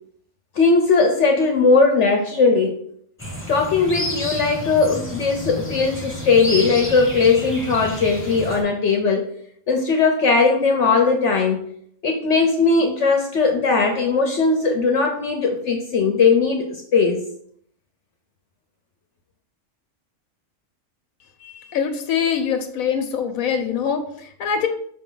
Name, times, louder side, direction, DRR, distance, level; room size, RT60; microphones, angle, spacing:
voice 1, 0.5-2.8 3.5-9.3 9.7-11.6 12.0-17.2, left 4 dB, 60° left, 2 dB, 1.0 m, -18 dB
sound 1, 3.2-8.6, left 1 dB, 10° left, 1.3 m, -30 dB
voice 2, 21.4-24.7, left 7 dB, 85° left, 6 dB, 1.2 m, -24 dB
6.1 x 4.4 x 3.8 m, 0.65 s
omnidirectional pair, 1.4 m